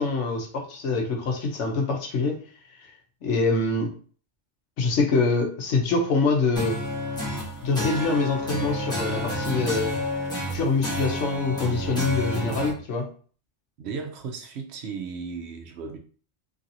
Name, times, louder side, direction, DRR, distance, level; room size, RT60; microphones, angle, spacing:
voice 1, 0.0-2.4 3.2-3.9 4.8-6.8 7.6-10.0 10.5-13.1, left 3 dB, 80° left, 1 dB, 1.1 m, -25 dB
sound 1, 6.6-12.7, equal, 5° left, 0.9 m, -30 dB
voice 2, 12.5-12.9 13.8-16.0, right 5 dB, 70° right, 4 dB, 0.9 m, -36 dB
3.1 x 2.8 x 2.6 m, 0.41 s
omnidirectional pair, 1.2 m